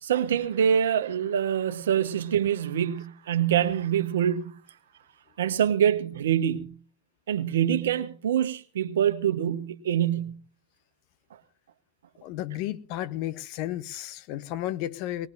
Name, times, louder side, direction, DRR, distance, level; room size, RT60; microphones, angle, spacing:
voice 1, 0.0-4.5 5.4-6.8 7.3-10.4, right 9 dB, 75° right, 1.0 m, -25 dB
voice 2, 12.2-15.3, left 13 dB, 55° left, 0.8 m, -33 dB
20.0 x 18.5 x 2.6 m
hypercardioid pair, 100°, 0 cm